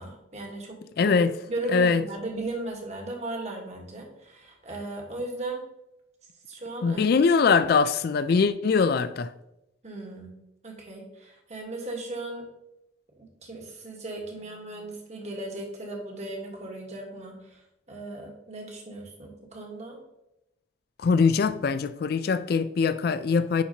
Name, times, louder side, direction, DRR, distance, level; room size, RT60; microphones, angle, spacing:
voice 1, 0.0-0.8 1.0-1.2 1.5-5.6 6.5-7.0 9.8-10.3 10.6-12.5 13.4-20.0, right 2 dB, 35° right, 1.3 m, -36 dB
voice 2, 1.0-1.3 1.7-2.0 6.8-9.3 21.0-23.6, left 5 dB, 50° left, 0.3 m, -22 dB
10.0 x 4.3 x 2.8 m
head